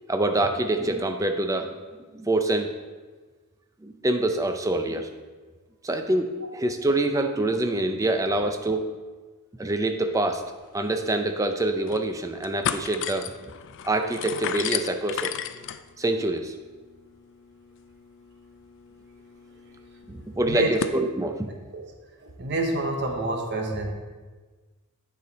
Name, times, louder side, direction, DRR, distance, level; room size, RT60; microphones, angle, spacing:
voice 1, 0.1-1.7 2.1-2.7 3.8-5.1 5.8-8.9 9.6-10.4 10.7-13.3 13.8-15.3 16.0-16.5 20.3-21.5, right 2 dB, 15° right, 6 dB, 0.4 m, -25 dB
sound 1, 10.6-10.7 11.0-11.1 11.6-12.1 12.4-21.0, left 9 dB, 55° left, 0.3 m, -35 dB
voice 2, 22.2-23.9, right 2 dB, 50° right, 2 dB, 0.9 m, -28 dB
9.3 x 5.0 x 4.0 m, 1.4 s
head